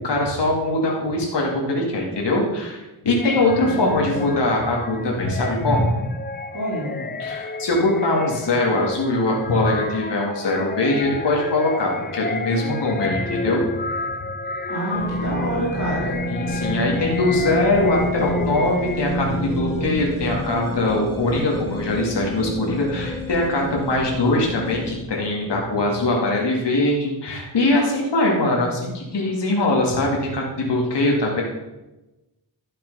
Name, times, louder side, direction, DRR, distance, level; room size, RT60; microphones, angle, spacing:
voice 1, 0.0-5.9 7.2-13.7 16.3-31.4, left 2 dB, 70° left, -1 dB, 2.6 m, -22 dB
sound 1, 3.2-19.4, left 3 dB, 25° left, 0.5 m, -32 dB
voice 2, 3.6-4.3 6.5-7.2 14.7-16.2, right 1 dB, 45° right, -6 dB, 3.6 m, -28 dB
sound 2, 14.9-24.9, equal, 10° left, 3.7 m, -29 dB
12.0 x 7.5 x 5.6 m, 1.0 s
wide cardioid pair, 110°, 43 cm